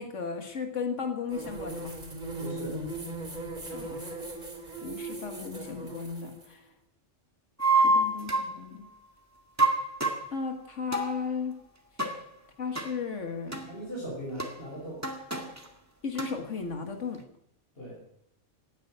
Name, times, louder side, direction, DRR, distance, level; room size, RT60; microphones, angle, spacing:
voice 1, 0.0-1.9 3.7-4.0 4.8-6.6 7.7-8.9 10.3-11.6 12.6-13.6 16.0-17.2, left 5 dB, 90° left, 5 dB, 2.0 m, -35 dB
sound 1, 1.3-6.5, right 2 dB, 40° right, 3.6 m, -38 dB
voice 2, 2.4-2.8 13.7-15.0 17.8-18.0, equal, 55° left, -4 dB, 5.7 m, -39 dB
sound 2, 7.6-8.6 9.6-10.3 10.9-11.1 12.0-12.2 12.8-12.9 13.5-13.7 14.4-14.5 15.0-15.7 16.2-16.3, right 2 dB, 15° right, 1.9 m, -26 dB
17.0 x 9.5 x 8.9 m, 0.71 s
omnidirectional pair, 1.2 m